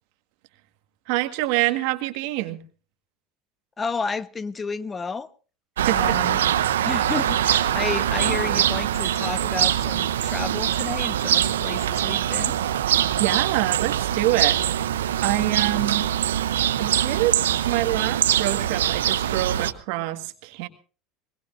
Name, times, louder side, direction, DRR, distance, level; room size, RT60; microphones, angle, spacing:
voice 1, 1.1-2.6 5.9-6.0 12.9-14.6 15.2-16.0 16.8-20.7, right 17 dB, 70° right, 8 dB, 1.7 m, -26 dB
voice 2, 3.8-5.3 5.9-6.4 6.8-12.6, left 4 dB, 25° left, 14 dB, 1.0 m, -31 dB
sound 1, 5.8-19.7, right 10 dB, 90° right, 0.7 m, -23 dB
21.5 x 21.0 x 2.6 m, 0.36 s
hypercardioid pair, 85°, 0 cm